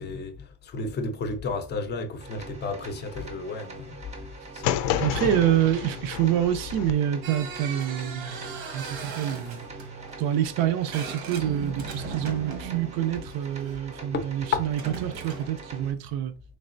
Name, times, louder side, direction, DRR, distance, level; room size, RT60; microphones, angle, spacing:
voice 1, 0.0-5.3 13.9-14.7, left 4 dB, 25° left, 0.5 m, -33 dB
sound 1, 2.2-15.9, right 3 dB, 20° right, 0.5 m, -43 dB
sound 2, 4.6-6.9, left 11 dB, 80° left, 0.5 m, -30 dB
voice 2, 5.0-8.5 8.7-9.7 10.2-16.3, right 11 dB, 60° right, 0.6 m, -27 dB
sound 3, 7.2-13.8 14.6-15.6, right 5 dB, 85° right, 1.2 m, -38 dB
3.8 x 3.3 x 2.5 m
cardioid pair, 150°, 38 cm